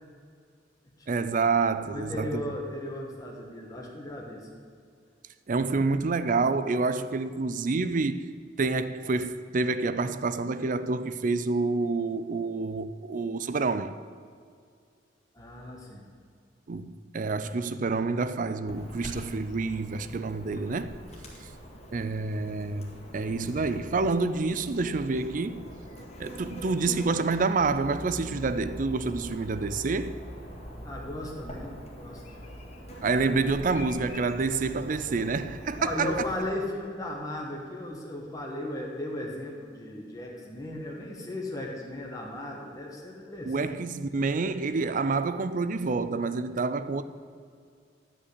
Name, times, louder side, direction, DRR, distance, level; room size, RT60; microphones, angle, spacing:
voice 1, 1.1-2.4 5.5-14.0 16.7-20.9 21.9-22.9 23.1-25.7 26.2-30.2 33.0-36.2 43.5-47.0, right 3 dB, 45° right, 0.5 m, -28 dB
voice 2, 1.8-4.5 15.3-16.1 30.8-32.4 35.7-43.8, left 1 dB, 20° left, 1.4 m, -36 dB
Chirp tweet / Buzz, 18.7-36.5, equal, 35° left, 1.9 m, -43 dB
11.0 x 5.5 x 8.3 m
head